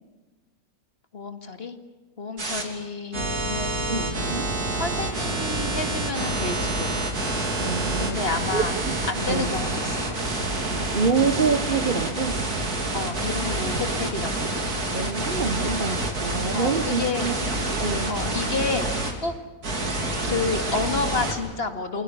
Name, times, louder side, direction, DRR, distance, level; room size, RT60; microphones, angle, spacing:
voice 1, 1.1-1.8 2.2-3.8 4.7-6.9 8.0-8.7 9.1-10.3 12.9-14.5 16.5-17.3 18.1-18.9 19.2-19.3 20.2-22.0, left 4 dB, 40° left, 7 dB, 2.2 m, -30 dB
sound 1, 2.4-2.6 3.1-19.1 19.6-21.3, right 2 dB, 85° right, 3.6 m, -27 dB
voice 2, 3.9-4.5 7.6-8.2 8.5-8.9 9.3-9.6 10.7-12.4 14.9-17.4 17.8-18.2, right 5 dB, 40° right, 10 dB, 1.0 m, -26 dB
29.0 x 22.0 x 6.9 m, 1.3 s
omnidirectional pair, 1.6 m